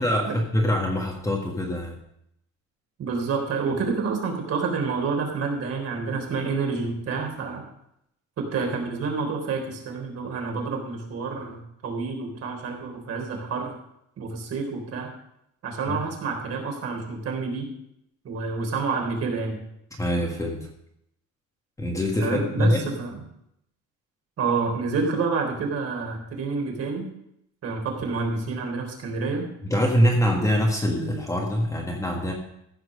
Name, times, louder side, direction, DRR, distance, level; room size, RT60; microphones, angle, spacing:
voice 1, 0.0-1.9 15.9-16.0 20.0-20.7 21.8-22.8 29.6-32.3, equal, 10° left, 0 dB, 1.6 m, -24 dB
voice 2, 3.0-7.6 8.4-13.7 14.2-15.1 15.6-17.7 18.2-19.6 22.2-22.7 23.0-23.2 24.4-27.1 27.6-29.5, right 4 dB, 45° right, 1 dB, 3.6 m, -28 dB
15.0 x 6.2 x 6.5 m, 0.76 s
cardioid pair, 150°, 34 cm